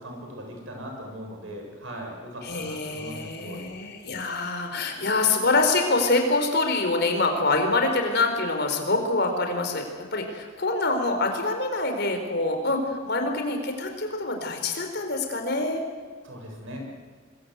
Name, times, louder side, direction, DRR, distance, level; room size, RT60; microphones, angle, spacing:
voice 1, 0.0-3.6 16.2-16.8, equal, 75° right, 2 dB, 7.2 m, -39 dB
voice 2, 2.4-9.8 10.1-15.8, left 3 dB, 55° left, 4 dB, 4.2 m, -25 dB
25.0 x 22.5 x 8.0 m, 1.6 s
head